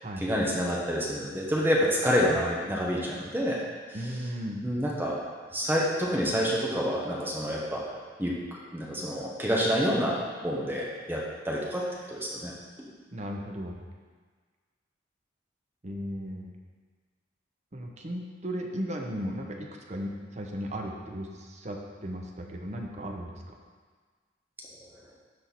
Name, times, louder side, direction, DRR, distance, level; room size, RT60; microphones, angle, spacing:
voice 1, 0.2-3.6 4.6-5.1 5.5-7.9 8.2-11.8 12.1-12.5, equal, 10° right, -4 dB, 1.0 m, -28 dB
voice 2, 3.9-4.6 13.1-13.8 15.8-16.5 17.7-23.6, equal, 40° right, 2 dB, 0.8 m, -36 dB
12.5 x 4.5 x 4.2 m, 1.5 s
head